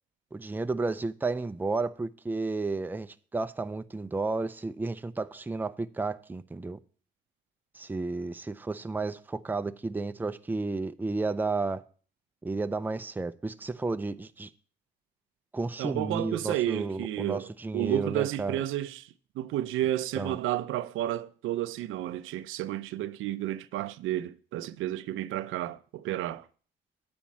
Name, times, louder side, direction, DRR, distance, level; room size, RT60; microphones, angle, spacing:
voice 1, 0.3-6.8 7.8-11.8 12.4-14.5 15.5-18.6 20.1-20.4, right 3 dB, 10° right, 0.4 m, -32 dB
voice 2, 15.8-19.1 19.4-26.4, right 13 dB, 85° right, 0.5 m, -31 dB
8.6 x 4.3 x 7.2 m
cardioid pair, 90°, 20 cm